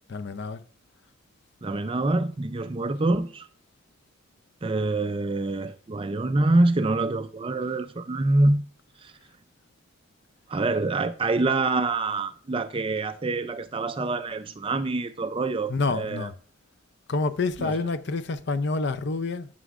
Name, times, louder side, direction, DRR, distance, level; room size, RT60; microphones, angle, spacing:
voice 1, 0.1-0.6 15.7-16.3 17.1-19.5, left 3 dB, 55° left, 0.5 m, -28 dB
voice 2, 1.6-3.5 4.6-8.7 9.0-9.1 10.5-16.3 17.6-17.7, right 2 dB, 25° right, 0.4 m, -25 dB
11.0 x 6.1 x 2.5 m
head